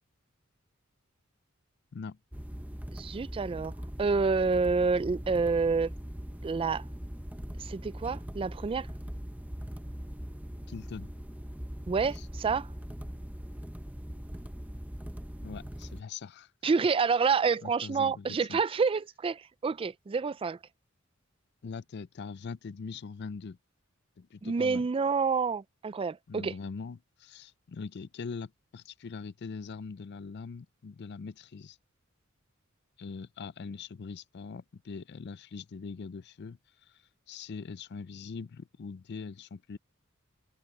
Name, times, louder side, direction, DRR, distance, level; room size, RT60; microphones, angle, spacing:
sound 1, 2.3-16.0, equal, 10° right, 1.0 m, -41 dB
voice 1, 3.0-3.7 4.0-5.9 6.4-6.8 7.6-8.9 11.9-12.7 16.6-20.6 24.4-26.5, right 5 dB, 25° right, 0.3 m, -28 dB
voice 2, 10.7-11.1 12.1-12.3 15.4-16.5 17.6-18.6 21.6-23.6 24.2-24.9 26.3-31.8 33.0-37.0 37.3-39.8, left 5 dB, 55° left, 0.4 m, -42 dB
head